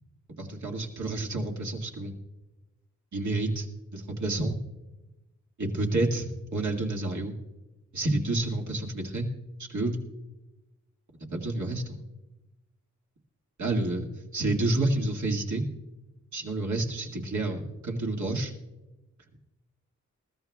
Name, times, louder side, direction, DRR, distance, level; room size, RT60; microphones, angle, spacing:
voice 1, 0.4-2.1 3.1-3.7 3.9-4.6 5.6-6.3 6.5-7.3 7.9-9.3 9.7-10.0 11.3-12.0 13.6-15.6 16.3-18.5, right 2 dB, 70° right, -1 dB, 2.2 m, -29 dB
20.5 x 14.0 x 2.4 m, 1.0 s
cardioid pair, 60°, 31 cm